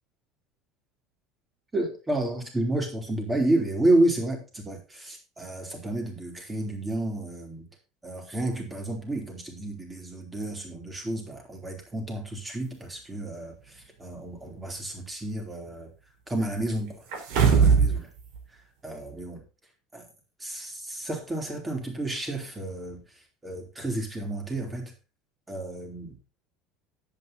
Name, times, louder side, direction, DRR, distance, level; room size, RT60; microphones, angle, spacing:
voice 1, 1.7-7.7 8.0-15.9 16.3-17.0 17.5-18.1 18.8-19.4 19.9-20.1 20.4-23.0 23.4-24.9 25.5-26.2, right 1 dB, 10° right, 2 dB, 3.5 m, -30 dB
sound 1, 17.1-18.0 18.3-18.4, right 6 dB, 70° right, 4.1 m, -19 dB
10.5 x 9.0 x 4.0 m, 0.31 s
cardioid pair, 150°, 0 cm